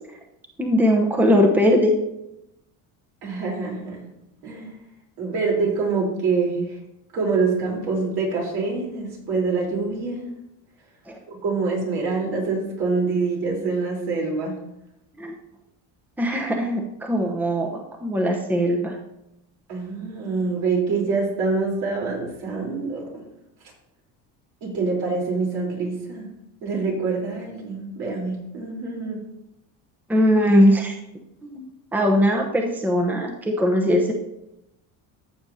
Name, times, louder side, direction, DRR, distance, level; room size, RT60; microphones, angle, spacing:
voice 1, 0.6-1.9 11.1-11.2 15.2-15.4 16.2-19.0 30.1-31.0 31.4-31.7 31.9-34.1, equal, 5° right, 1 dB, 0.9 m, -20 dB
voice 2, 3.2-4.0 4.4-4.8 5.2-6.8 7.1-10.3 11.3-14.6 19.7-23.2 24.6-26.3 26.6-29.2, right 4 dB, 70° right, -2 dB, 3.9 m, -25 dB
14.0 x 6.9 x 2.8 m, 0.86 s
cardioid pair, 120°, 38 cm